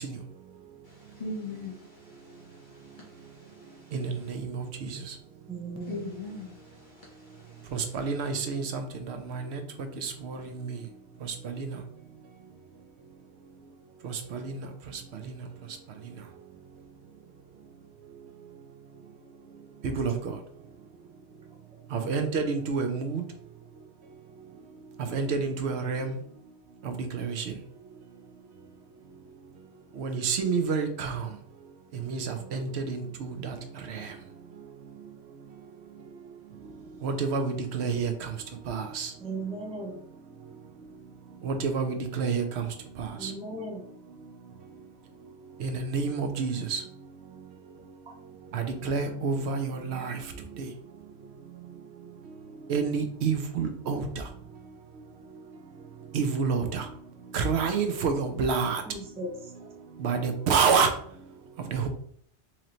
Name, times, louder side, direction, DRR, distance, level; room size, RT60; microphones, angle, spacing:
voice 1, 0.8-4.4 5.8-8.1, left 2 dB, 45° left, -3 dB, 0.9 m, -42 dB
voice 2, 3.9-4.4 7.7-8.8 9.1-9.6 10.0-10.4 14.3-14.5 19.8-20.1 21.9-23.2 25.1-26.1 27.1-27.4 30.0-31.2 32.1-33.5 37.0-38.1 38.7-39.1 41.4-42.4 43.0-43.3 45.6-46.8 48.5-50.1 52.7-54.1 56.1-56.8 57.3-58.8 60.0-60.9 61.7-61.9, right 5 dB, 70° right, 7 dB, 0.8 m, -28 dB
voice 3, 5.5-6.1 19.9-20.0 39.2-39.9 43.2-43.8 58.9-59.5, right 2 dB, 10° right, 0 dB, 0.5 m, -37 dB
3.1 x 2.9 x 3.8 m, 0.64 s
omnidirectional pair, 1.2 m